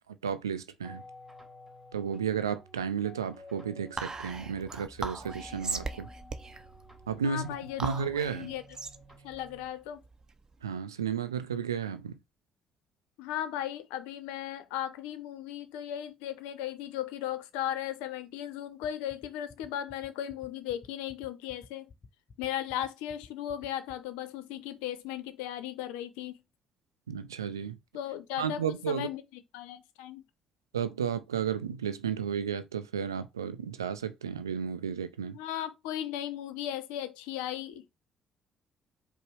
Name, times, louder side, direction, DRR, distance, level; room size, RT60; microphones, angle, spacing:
voice 1, 0.2-1.0 1.9-6.1 7.1-8.5 10.6-12.2 27.1-27.8 28.4-29.1 30.7-35.4, right 7 dB, 85° right, 0.3 m, -33 dB
sound 1, 0.8-9.6, left 2 dB, 5° right, 2.7 m, -51 dB
Whispering, 4.0-10.6, right 4 dB, 30° right, 0.7 m, -39 dB
voice 2, 7.2-8.0 8.3-8.6 9.2-10.0 13.2-21.9 22.4-26.4 27.9-30.2 35.3-37.9, left 11 dB, 70° left, 0.5 m, -36 dB
sound 2, 18.8-23.9, left 5 dB, 35° left, 0.7 m, -52 dB
4.9 x 2.0 x 4.6 m
figure-of-eight pair, 45°, 2 cm